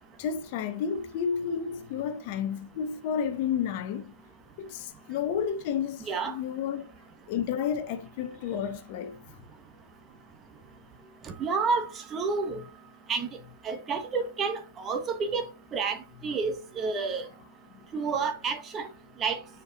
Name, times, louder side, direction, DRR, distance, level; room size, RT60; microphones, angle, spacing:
voice 1, 0.2-4.1 4.6-6.9 7.3-9.2 17.7-17.9, left 7 dB, 45° left, 0.9 m, -31 dB
voice 2, 11.2-12.6 13.1-13.3 13.6-15.5 15.7-17.3 17.9-18.9 19.2-19.4, right 4 dB, 20° right, 1.1 m, -30 dB
6.5 x 4.6 x 4.0 m
hypercardioid pair, 130°, 0 cm